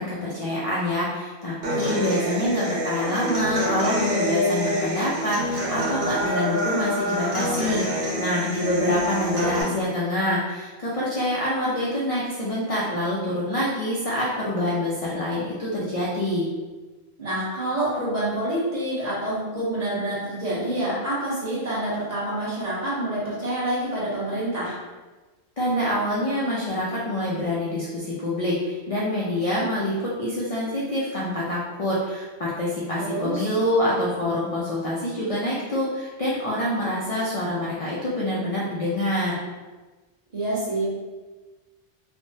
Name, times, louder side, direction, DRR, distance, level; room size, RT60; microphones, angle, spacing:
voice 1, 0.0-16.5 25.6-39.4, left 1 dB, 50° left, -6 dB, 0.4 m, -26 dB
Human voice / Acoustic guitar, 1.6-9.6, equal, 65° right, 1.1 m, -26 dB
voice 2, 9.1-9.7 17.2-24.8 33.0-33.5 40.3-40.9, right 1 dB, 40° right, -8 dB, 1.0 m, -27 dB
3.3 x 2.0 x 2.7 m, 1.3 s
omnidirectional pair, 1.1 m